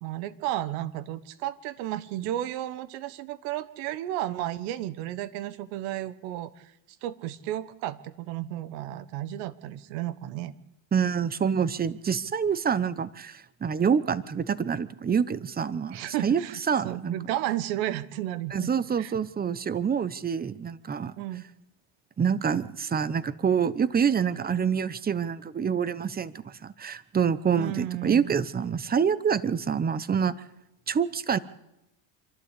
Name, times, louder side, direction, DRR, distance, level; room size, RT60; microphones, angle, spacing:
voice 1, 0.0-6.7 7.0-10.5 15.9-18.7 19.0-19.1 21.2-21.4 27.5-28.3, right 13 dB, 85° right, 15 dB, 1.4 m, -33 dB
voice 2, 10.9-16.4 16.7-17.2 18.5-21.1 22.2-30.3 30.9-31.4, right 7 dB, 20° right, 16 dB, 0.8 m, -26 dB
27.0 x 12.0 x 8.3 m, 0.90 s
supercardioid pair, 115°, 48 cm